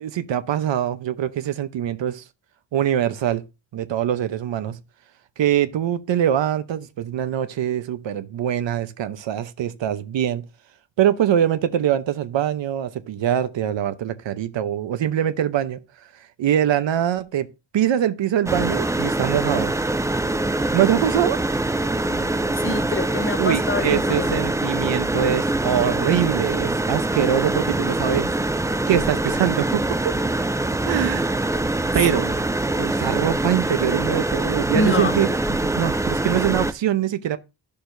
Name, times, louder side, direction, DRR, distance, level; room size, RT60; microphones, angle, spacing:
voice 1, 0.0-2.2 2.7-3.4 3.7-4.8 5.4-10.4 11.0-15.8 16.4-17.5 17.7-19.7 20.7-21.4 23.4-28.3 28.9-30.2 30.9-31.4 31.9-32.4 32.8-37.4, right 10 dB, 75° right, 0.8 m, -23 dB
sound 1, 18.5-36.7, right 2 dB, 10° right, 0.3 m, -24 dB
voice 2, 22.0-24.3 34.7-35.1, left 3 dB, 25° left, 1.0 m, -26 dB
11.5 x 6.8 x 2.6 m
wide cardioid pair, 125°, 45 cm